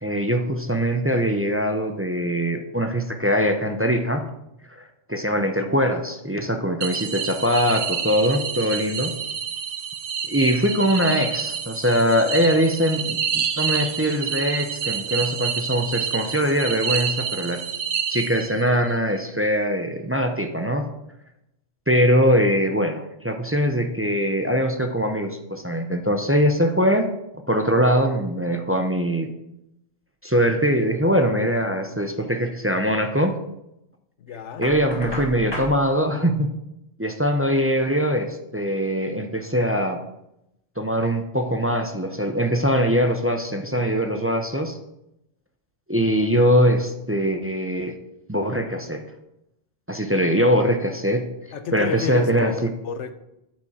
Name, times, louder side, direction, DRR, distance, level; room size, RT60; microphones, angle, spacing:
voice 1, 0.0-4.2 4.7-4.8 5.1-9.2 10.3-17.6 18.1-20.9 21.9-27.1 27.5-29.3 30.2-33.4 34.6-36.5 37.0-40.0 40.8-44.8 45.9-48.0 48.3-49.0 49.9-51.3 51.7-52.7, equal, 15° right, 5 dB, 0.6 m, -22 dB
sound 1, 6.8-18.8, right 7 dB, 55° right, 0.8 m, -28 dB
voice 2, 34.2-34.7 51.5-53.1, left 6 dB, 80° left, 10 dB, 1.1 m, -31 dB
Knock, 34.6-35.8, left 1 dB, 20° left, 1.7 m, -33 dB
8.6 x 7.6 x 4.3 m, 0.85 s
omnidirectional pair, 1.2 m